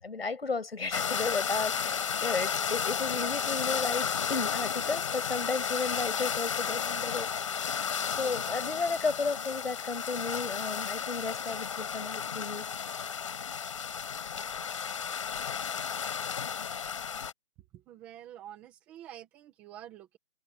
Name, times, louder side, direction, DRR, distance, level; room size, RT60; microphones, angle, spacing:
voice 1, 0.0-7.3 8.1-12.7, left 4 dB, 60° left, 7.3 m, -33 dB
sound 1, 0.9-17.3, left 7 dB, 30° left, 5.3 m, -33 dB
voice 2, 17.7-20.2, right 11 dB, 5° right, 1.7 m, -48 dB
open air
figure-of-eight pair, 170°, 34 cm